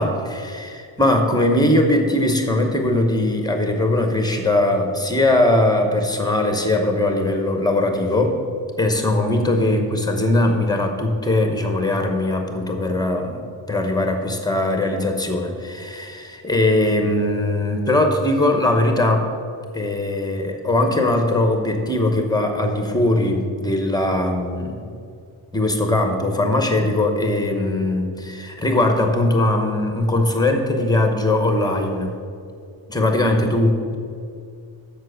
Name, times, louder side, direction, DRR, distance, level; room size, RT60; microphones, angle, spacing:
voice 1, 0.0-8.4 8.8-19.3 19.7-24.9 25.5-32.2 32.9-34.0, left 1 dB, 10° left, 4 dB, 1.0 m, -20 dB
7.5 x 6.8 x 6.3 m, 2.4 s
wide cardioid pair, 140°, 49 cm